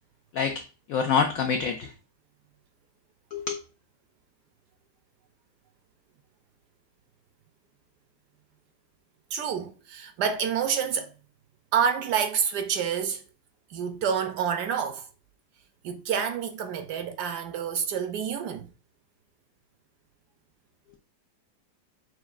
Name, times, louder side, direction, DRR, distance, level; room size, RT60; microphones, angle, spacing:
voice 1, 0.9-1.9 3.3-3.6, left 6 dB, 85° left, 0.7 m, -26 dB
voice 2, 9.3-11.1 11.7-13.2 13.7-15.1 15.8-18.7, right 7 dB, 70° right, 1.0 m, -28 dB
6.2 x 2.6 x 2.4 m
omnidirectional pair, 2.0 m